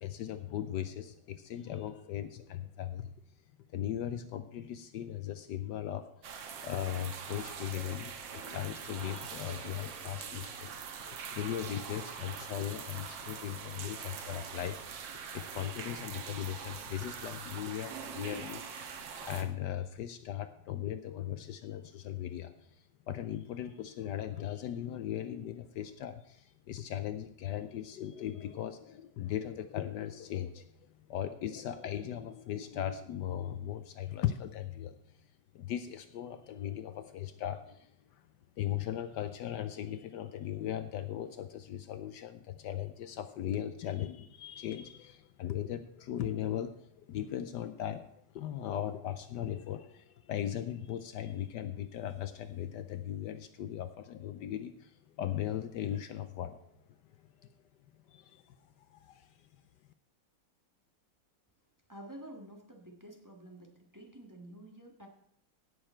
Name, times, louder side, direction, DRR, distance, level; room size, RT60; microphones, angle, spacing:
voice 1, 0.0-3.1 3.7-15.1 15.3-22.5 23.1-30.6 31.1-34.9 35.5-37.9 38.6-46.7 47.1-48.1 48.3-54.9 55.2-56.6 58.1-58.4 58.9-59.3, left 11 dB, 75° left, 10 dB, 1.2 m, -38 dB
sound 1, 6.2-19.4, right 7 dB, 90° right, 1.8 m, -43 dB
voice 2, 61.9-65.1, right 1 dB, 10° right, 1 dB, 1.4 m, -50 dB
16.5 x 7.0 x 4.4 m, 0.71 s
omnidirectional pair, 2.0 m